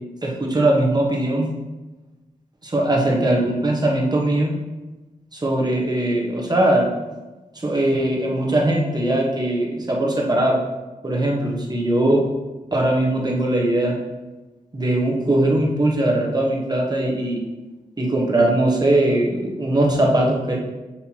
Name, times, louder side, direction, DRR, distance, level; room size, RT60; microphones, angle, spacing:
voice 1, 0.2-1.5 2.6-4.5 5.3-6.9 7.5-10.6 11.0-12.2 12.7-13.9 14.7-17.4 18.0-20.6, right 1 dB, 30° right, -2 dB, 1.2 m, -20 dB
6.6 x 5.7 x 2.9 m, 1.1 s
wide cardioid pair, 110°, 15 cm